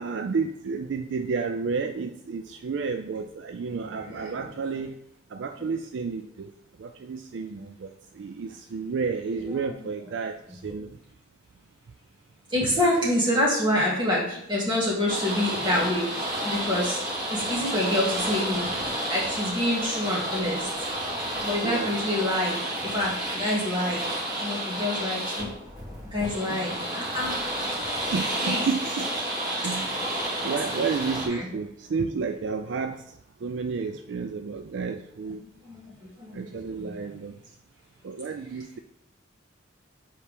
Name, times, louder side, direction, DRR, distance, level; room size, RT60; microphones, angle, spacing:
voice 1, 0.0-5.0 5.3-6.5 6.8-11.0 21.6-22.0 26.5-26.7 28.1-29.1 29.6-30.2 30.4-33.2 33.4-35.4 36.3-37.3 38.0-38.8, right 5 dB, 60° right, 6 dB, 0.3 m, -31 dB
voice 2, 3.7-4.5 5.6-5.7 9.7-9.8 12.5-17.0 17.3-20.7 21.4-22.6 22.8-24.0 24.4-25.5 26.1-27.4 28.4-28.6 29.6-29.8 31.2-31.5 35.6-36.9, left 1 dB, 25° right, -5 dB, 2.2 m, -27 dB
sound 1, 15.1-31.3, right 1 dB, 45° right, 2.7 m, -31 dB
7.1 x 4.7 x 3.5 m, 0.75 s
head